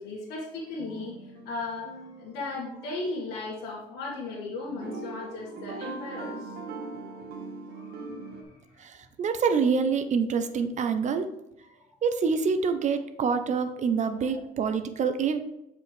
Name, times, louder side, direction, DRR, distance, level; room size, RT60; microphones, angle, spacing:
voice 1, 0.0-6.6 7.7-8.9 11.7-12.0, left 3 dB, 80° left, -7 dB, 1.7 m, -37 dB
sound 1, 0.8-3.2 4.7-8.4, right 3 dB, 65° right, 1.4 m, -41 dB
voice 2, 8.8-11.3 12.0-15.4, right 5 dB, 45° right, 9 dB, 0.7 m, -26 dB
7.8 x 4.9 x 3.3 m, 0.88 s
cardioid pair, 110°, 17 cm